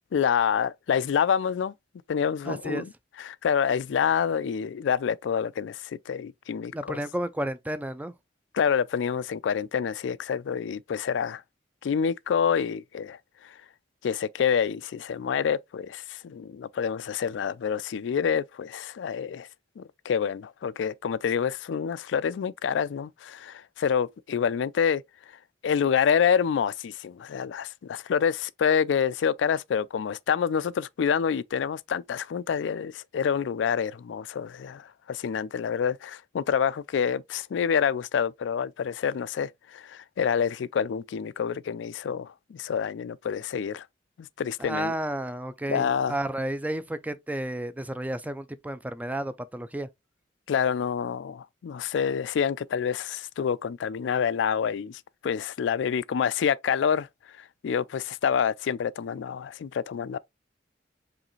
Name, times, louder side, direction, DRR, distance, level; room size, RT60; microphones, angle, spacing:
voice 1, 0.1-1.7 2.1-2.9 3.2-7.0 8.5-11.4 11.8-13.5 14.0-19.5 19.8-25.0 25.6-43.9 44.2-44.9 45.7-46.2 50.5-57.1 57.4-60.2, left 7 dB, 85° left, 0.3 m, -27 dB
voice 2, 2.5-2.8 6.7-8.1 44.6-49.9, right 1 dB, 10° right, 0.4 m, -32 dB
4.9 x 3.2 x 3.1 m
head